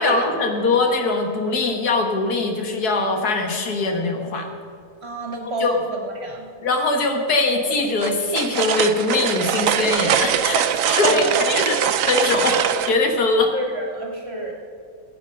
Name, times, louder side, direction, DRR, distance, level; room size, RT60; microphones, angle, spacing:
voice 1, 0.0-4.5 5.6-5.8 6.6-11.8 12.1-13.5, left 3 dB, 75° left, 3 dB, 2.0 m, -22 dB
voice 2, 5.0-6.5 11.1-11.4 13.5-14.5, right 2 dB, 40° right, 0 dB, 2.0 m, -28 dB
sound 1, 8.0-13.0, right 9 dB, 65° right, 1.0 m, -22 dB
18.0 x 8.2 x 5.4 m, 2.5 s
omnidirectional pair, 1.6 m